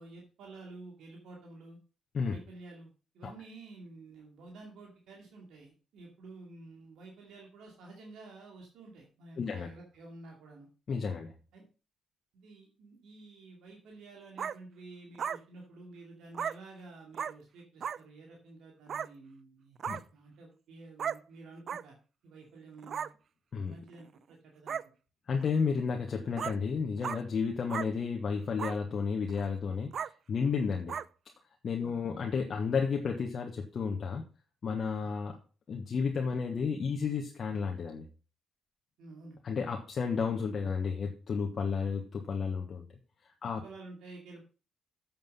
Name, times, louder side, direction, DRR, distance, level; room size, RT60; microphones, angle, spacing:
voice 1, 0.0-1.8 2.2-10.7 11.5-11.7 12.3-19.8 20.1-22.0 22.2-23.1 23.7-24.8 27.6-27.8 31.8-32.0 35.0-35.1 39.0-39.4 43.6-44.4, right 3 dB, 80° right, 0 dB, 2.6 m, -51 dB
voice 2, 9.4-9.7 10.9-11.3 19.9-20.0 23.5-23.7 25.3-29.9 30.3-30.9 31.6-34.2 34.6-35.4 35.7-38.1 39.4-42.8 43.4-43.6, left 5 dB, 50° left, 1 dB, 1.4 m, -32 dB
sound 1, 14.4-14.6 15.2-15.4 16.3-16.6 17.1-17.3 17.8-18.0 18.9-19.1 19.8-20.0 21.0-21.2 21.7-21.8 22.8-23.1 23.9-24.0 24.7-24.8 25.4-25.5 26.4-26.6 27.0-27.2 27.7-27.9 28.6-28.8 29.3-29.4 29.9-30.1 30.9-31.1, right 7 dB, 55° right, 0.3 m, -35 dB
8.1 x 7.5 x 5.5 m, 0.36 s
cardioid pair, 90°, 0 cm